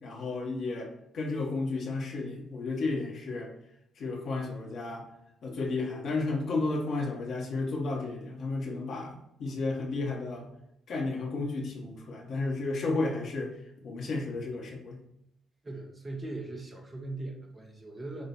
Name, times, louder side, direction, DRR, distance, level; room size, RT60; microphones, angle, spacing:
voice 1, 0.0-3.5 4.0-5.0 5.4-10.5 10.9-13.5 13.8-15.0, left 3 dB, 60° left, -2 dB, 1.6 m, -32 dB
voice 2, 15.6-18.3, right 2 dB, 30° right, 0 dB, 1.7 m, -40 dB
8.7 x 2.9 x 4.5 m, 0.80 s
figure-of-eight pair, 45°, 0 cm